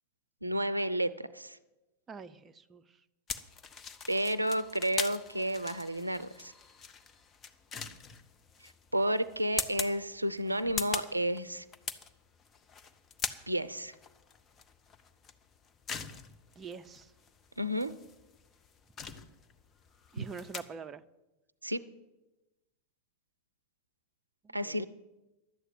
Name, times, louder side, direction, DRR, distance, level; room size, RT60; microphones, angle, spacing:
voice 1, 0.4-1.6 4.1-6.5 8.9-11.6 13.5-13.9 17.6-17.9 20.2-20.3 21.6-21.8 24.5-24.9, right 1 dB, 85° right, 15 dB, 0.5 m, -31 dB
voice 2, 2.1-2.8 16.6-17.1 20.1-21.0 24.4-24.9, right 5 dB, 20° right, 9 dB, 0.5 m, -45 dB
sound 1, 3.3-20.6, left 6 dB, 25° left, 0.8 m, -42 dB
11.5 x 8.1 x 9.1 m, 1.0 s
figure-of-eight pair, 90°, 0 cm